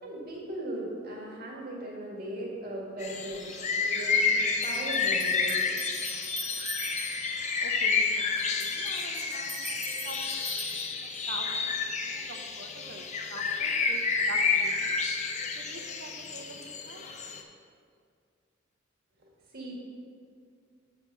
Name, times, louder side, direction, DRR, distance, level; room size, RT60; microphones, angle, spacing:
voice 1, 0.0-5.8 19.2-19.7, right 1 dB, 50° right, -3 dB, 1.8 m, -38 dB
sound 1, 3.0-17.4, left 4 dB, 35° left, 0.7 m, -30 dB
sound 2, 3.3-3.4 4.6-7.4 8.4-11.4, equal, ahead, 0.8 m, -41 dB
voice 2, 7.6-10.4 11.3-15.0 15.6-17.1, right 2 dB, 65° right, 4 dB, 0.7 m, -45 dB
7.8 x 5.7 x 5.7 m, 2.2 s
head